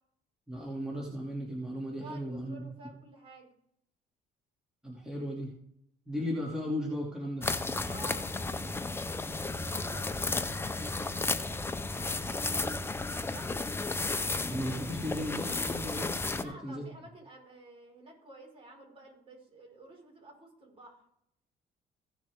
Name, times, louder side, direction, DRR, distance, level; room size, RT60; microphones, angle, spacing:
voice 1, 0.5-2.6 4.8-5.5 6.1-7.5 14.5-16.9, equal, 5° right, -4 dB, 2.5 m, -36 dB
voice 2, 2.0-3.5 7.9-8.3 9.4-13.5 16.3-21.1, right 1 dB, 35° right, 0 dB, 5.0 m, -51 dB
sound 1, 7.4-16.4, left 3 dB, 15° left, 0.7 m, -33 dB
16.0 x 7.3 x 3.6 m, 0.72 s
cardioid pair, 110°, 17 cm